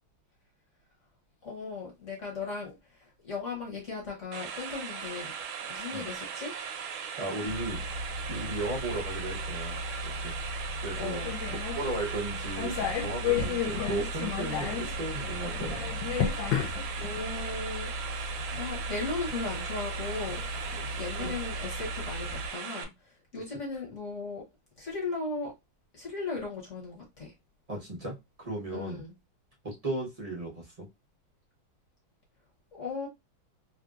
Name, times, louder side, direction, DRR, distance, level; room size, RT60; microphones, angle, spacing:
voice 1, 1.4-5.3 5.7-6.5 11.0-11.3 17.0-20.4 20.7-22.9 23.3-24.4 24.8-25.5 25.9-27.3 28.7-29.1 32.8-33.1, left 4 dB, 50° left, 1.0 m, -37 dB
sound 1, 4.3-22.8, right 7 dB, 80° right, 1.4 m, -38 dB
voice 2, 7.2-7.8 8.3-9.8 10.2-10.3 10.8-11.2 11.5-15.8 21.2-21.4 27.7-29.0 29.6-30.9, right 2 dB, 60° right, 0.4 m, -36 dB
sound 2, 7.5-22.5, left 4 dB, 70° left, 1.2 m, -34 dB
3.3 x 2.6 x 2.4 m
omnidirectional pair, 2.3 m